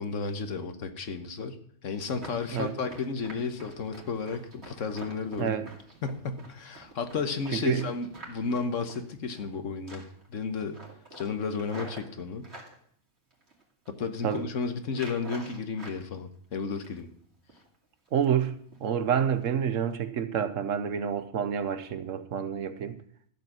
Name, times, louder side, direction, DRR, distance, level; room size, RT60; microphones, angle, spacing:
voice 1, 0.0-5.6 6.0-10.0 10.3-10.8 11.1-12.5 13.9-17.1, left 5 dB, 80° left, 1.5 m, -33 dB
Run, 2.1-9.5 9.8-10.3 10.6-12.7 13.3-13.9 14.1-14.4 14.9-16.0 16.3-17.1 17.5-17.7 18.1-18.4 18.7-18.9 19.3-19.5 19.8-20.0, right 2 dB, 55° right, 2.8 m, -47 dB
voice 2, 7.5-7.9 14.2-14.4 18.1-23.0, right 8 dB, 85° right, 1.3 m, -28 dB
14.0 x 7.6 x 6.1 m
omnidirectional pair, 1.3 m